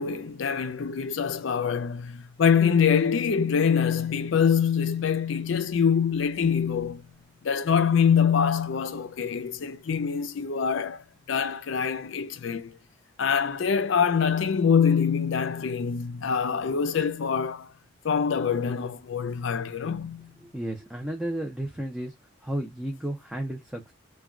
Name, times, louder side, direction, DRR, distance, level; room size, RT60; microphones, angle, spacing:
voice 1, 0.0-7.0 7.4-12.8 13.2-17.7 18.0-20.3, left 7 dB, 70° left, 0.4 m, -25 dB
voice 2, 20.4-22.1 22.4-23.9, right 1 dB, 5° right, 0.4 m, -33 dB
2.3 x 2.2 x 3.6 m
head